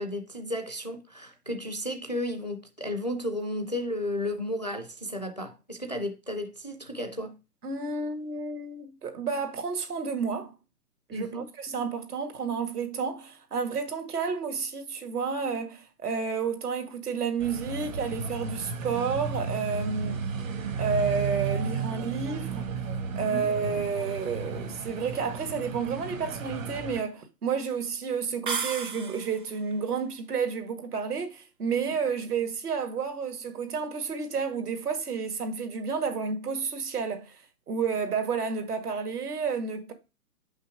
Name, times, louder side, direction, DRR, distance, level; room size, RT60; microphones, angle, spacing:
voice 1, 0.0-7.4 11.1-11.5 23.3-23.4, left 1 dB, 30° left, 0.4 m, -33 dB
voice 2, 7.6-10.5 11.1-20.3 20.8-22.7 23.2-37.4 37.7-39.9, right 5 dB, 70° right, 1.9 m, -31 dB
sound 1, 17.4-27.0, right 5 dB, 55° right, 1.4 m, -33 dB
sound 2, 28.5-29.5, right 5 dB, 35° right, 0.6 m, -33 dB
6.0 x 5.7 x 4.8 m
hypercardioid pair, 160°, 47 cm